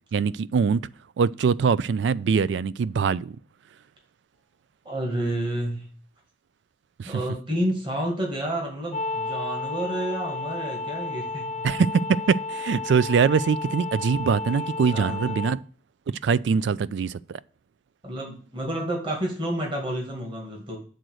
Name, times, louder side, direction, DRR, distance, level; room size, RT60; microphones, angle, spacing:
voice 1, 0.1-0.9 1.2-3.4 7.0-7.2 11.6-15.6 16.2-17.4, right 6 dB, 75° right, 0.3 m, -23 dB
voice 2, 4.8-5.9 7.1-11.5 14.5-15.2 16.5-16.6 18.0-20.8, right 1 dB, 25° right, 2.0 m, -30 dB
sound 1, 8.9-15.5, left 3 dB, 35° left, 0.4 m, -32 dB
7.7 x 3.9 x 6.2 m
head